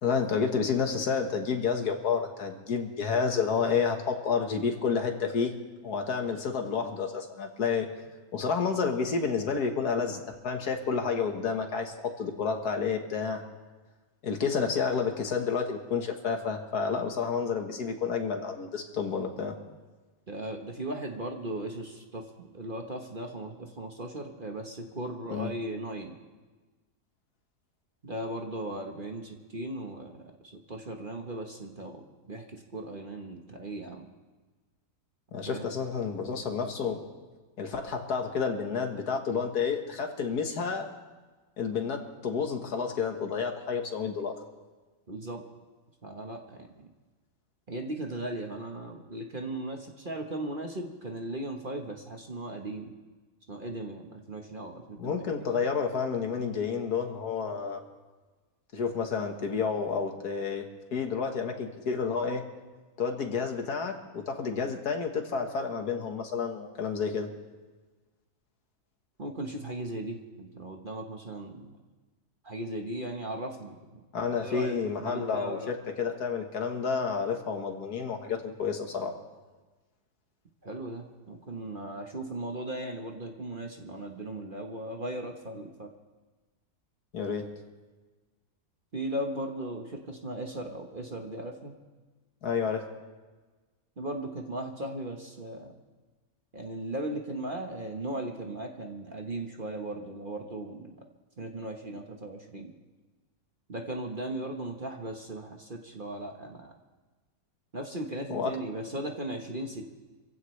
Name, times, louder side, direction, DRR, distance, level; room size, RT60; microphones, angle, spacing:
voice 1, 0.0-5.5 5.8-7.9 8.3-13.4 14.2-19.6 25.3-25.5 35.3-37.1 37.6-40.9 41.6-44.3 55.0-57.8 58.7-62.4 63.0-67.3 74.1-79.1 87.1-87.5 92.4-92.9 108.3-108.5, left 5 dB, 70° left, 4 dB, 1.9 m, -30 dB
voice 2, 20.3-26.2 28.0-30.3 30.7-34.1 35.4-35.6 45.1-45.4 46.0-46.9 47.7-52.9 53.5-55.2 69.2-71.8 72.4-74.0 74.3-75.7 80.6-85.9 88.9-91.7 94.0-95.7 96.5-101.0 101.4-102.7 103.7-106.7 107.7-109.9, right 1 dB, 35° right, 2 dB, 1.3 m, -37 dB
26.5 x 16.0 x 3.3 m, 1.3 s
omnidirectional pair, 1.8 m